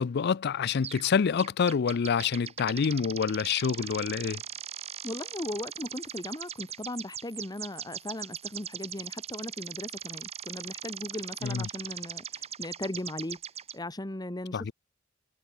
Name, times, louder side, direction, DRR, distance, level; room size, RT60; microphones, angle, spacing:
voice 1, 0.0-4.4 11.4-11.7 14.5-14.7, left 6 dB, 55° left, 0.4 m, -27 dB
sound 1, 0.8-1.1 1.4-13.8, right 8 dB, 30° right, 1.0 m, -40 dB
voice 2, 5.0-13.4 13.7-14.7, left 1 dB, 20° left, 1.4 m, -38 dB
head